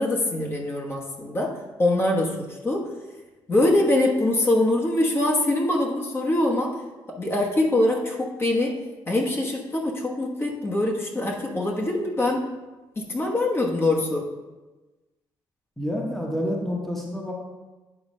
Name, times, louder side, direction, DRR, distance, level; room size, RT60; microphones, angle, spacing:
voice 1, 0.0-1.5 1.8-2.9 3.5-6.8 7.1-8.8 9.1-12.5 13.0-14.2, left 1 dB, 25° left, -2 dB, 1.2 m, -23 dB
voice 2, 15.8-17.3, equal, 5° left, -2 dB, 1.2 m, -28 dB
9.0 x 3.9 x 5.5 m, 1.2 s
cardioid pair, 140°, 9 cm